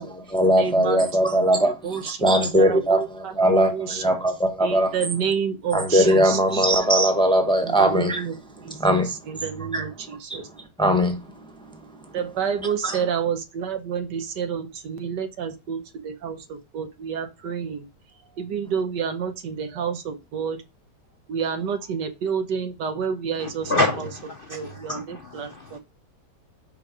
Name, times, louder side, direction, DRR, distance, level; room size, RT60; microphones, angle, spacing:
voice 1, 0.0-5.1 5.7-8.2 8.8-9.1 9.7-9.9 10.3-10.4 10.8-11.2 12.8-13.0, equal, 5° left, 0.8 m, -20 dB
voice 2, 0.6-4.2 4.6-6.4 7.6-8.3 9.3-10.5 12.1-17.8 18.4-20.6 21.3-23.9 24.5-25.8, right 7 dB, 80° right, 1.5 m, -29 dB
voice 3, 23.4-25.8, left 2 dB, 50° left, 0.6 m, -28 dB
5.5 x 5.0 x 4.9 m
omnidirectional pair, 1.8 m